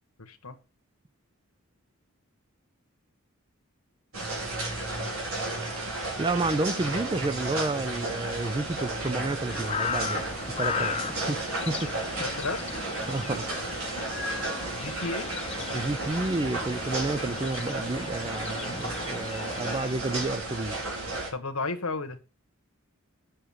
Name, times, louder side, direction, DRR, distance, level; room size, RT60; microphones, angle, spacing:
voice 1, 0.2-0.6 12.2-12.6 14.7-15.3 21.3-22.2, left 3 dB, 85° left, 1.4 m, -33 dB
sound 1, 4.1-21.3, right 2 dB, 75° right, 5.2 m, -33 dB
voice 2, 6.2-10.2 10.6-11.9 13.1-13.5 15.7-20.8, right 2 dB, 20° right, 0.5 m, -30 dB
sound 2, 9.5-20.0, left 5 dB, 30° left, 0.8 m, -37 dB
9.0 x 6.4 x 6.4 m
head